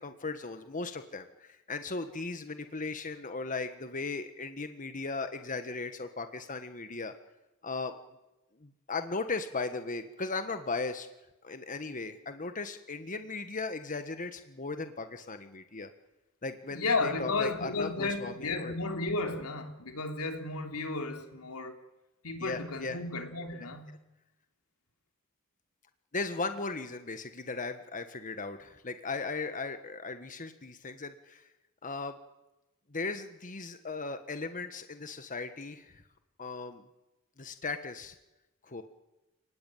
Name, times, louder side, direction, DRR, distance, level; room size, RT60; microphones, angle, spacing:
voice 1, 0.0-7.1 7.6-7.9 8.6-11.1 11.4-15.9 16.4-18.7 22.4-23.0 23.6-23.7 26.1-31.5 31.8-32.2 32.9-36.0 36.4-36.8 37.4-38.2 38.6-38.8, left 3 dB, 35° left, 1.4 m, -37 dB
voice 2, 16.7-21.8 22.2-23.9, left 3 dB, 85° left, 3.5 m, -33 dB
29.5 x 19.5 x 9.2 m
head